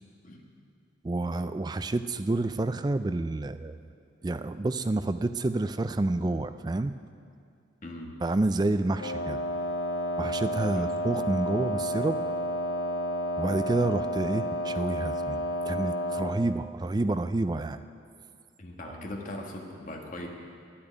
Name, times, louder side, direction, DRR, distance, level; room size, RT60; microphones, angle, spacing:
voice 1, 1.0-3.8 4.2-6.9 8.2-9.4 10.2-12.2 13.4-17.8, right 2 dB, 20° right, 11 dB, 0.3 m, -29 dB
voice 2, 7.8-8.2 10.7-10.9 18.6-20.3, left 1 dB, 40° left, 1 dB, 1.5 m, -39 dB
Wind instrument woodwind instrument, 9.0-16.4, equal, 90° left, 1.5 m, -31 dB
9.2 x 8.7 x 9.8 m, 2.4 s
head